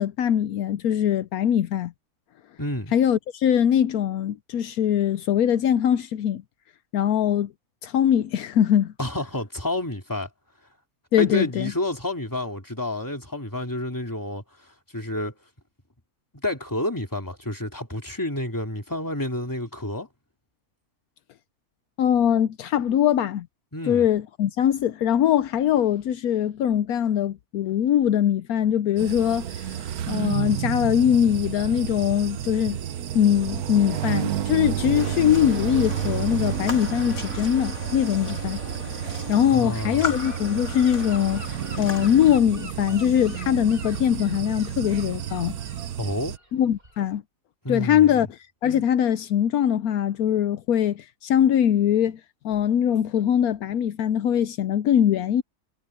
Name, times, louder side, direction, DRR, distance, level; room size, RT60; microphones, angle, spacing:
voice 1, 0.0-1.9 2.9-6.4 6.9-7.5 7.8-8.9 11.1-11.7 22.0-23.5 23.9-29.8 30.1-32.8 33.1-38.6 39.3-45.6 46.5-47.2 47.7-48.3 48.6-52.2 52.4-55.4, left 10 dB, 75° left, 1.1 m, -22 dB
voice 2, 2.6-2.9 9.0-10.3 11.2-15.3 16.3-20.1 23.7-24.1 39.5-40.2 46.0-46.3 47.6-48.3, left 1 dB, 10° left, 2.7 m, -29 dB
sound 1, 29.0-46.4, right 10 dB, 85° right, 1.4 m, -31 dB
sound 2, 34.9-42.4, left 3 dB, 50° left, 3.0 m, -36 dB
Gull seagull / Wind, 39.9-47.2, equal, 35° right, 7.8 m, -46 dB
omnidirectional pair, 1.6 m